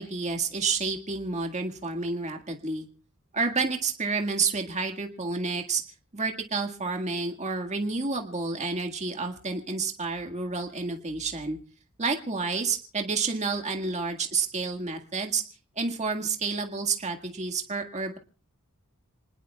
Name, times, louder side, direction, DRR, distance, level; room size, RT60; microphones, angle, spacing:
voice 1, 0.0-2.9 3.3-5.8 6.1-11.6 12.0-15.4 15.8-18.2, right 4 dB, 35° right, 4 dB, 1.8 m, -29 dB
28.0 x 20.0 x 2.4 m, 0.37 s
head